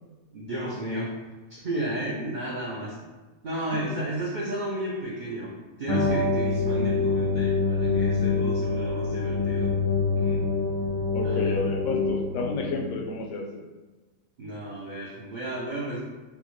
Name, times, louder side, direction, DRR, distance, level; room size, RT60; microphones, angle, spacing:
voice 1, 0.3-1.1 1.5-3.1 3.4-9.8 10.2-10.4 11.2-11.6 14.4-16.0, right 1 dB, 65° right, -5 dB, 0.4 m, -33 dB
sound 1, 5.9-13.0, left 4 dB, 35° left, 0.5 m, -25 dB
voice 2, 11.1-13.6, left 3 dB, 75° left, 2 dB, 1.0 m, -31 dB
4.6 x 2.0 x 3.0 m, 1.2 s
omnidirectional pair, 1.4 m